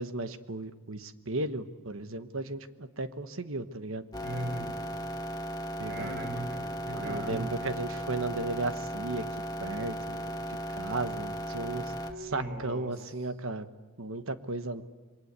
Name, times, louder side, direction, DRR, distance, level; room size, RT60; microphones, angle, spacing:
voice 1, 0.0-4.0 5.8-6.1 6.9-9.3 9.6-11.9 12.2-13.7 14.0-14.8, right 2 dB, 65° right, 10 dB, 1.3 m, -35 dB
sound 1, 4.1-12.1, equal, 15° left, 1.6 m, -36 dB
voice 2, 4.2-4.7 5.9-7.5 12.3-13.0, right 1 dB, 45° right, 2 dB, 5.7 m, -38 dB
27.5 x 23.0 x 8.2 m, 1.3 s
head